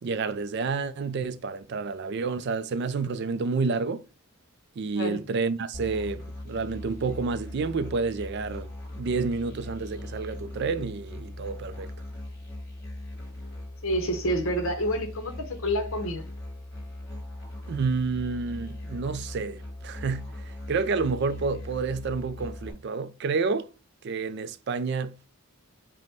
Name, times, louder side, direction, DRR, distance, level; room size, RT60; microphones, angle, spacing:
voice 1, 0.0-4.0 4.8-11.9 17.7-23.7 24.0-25.2, right 4 dB, 50° right, 0.3 m, -29 dB
Musical instrument, 5.7-22.7, left 1 dB, 10° left, 1.7 m, -39 dB
voice 2, 13.8-16.3, equal, 65° left, 1.0 m, -28 dB
5.1 x 2.2 x 4.3 m
head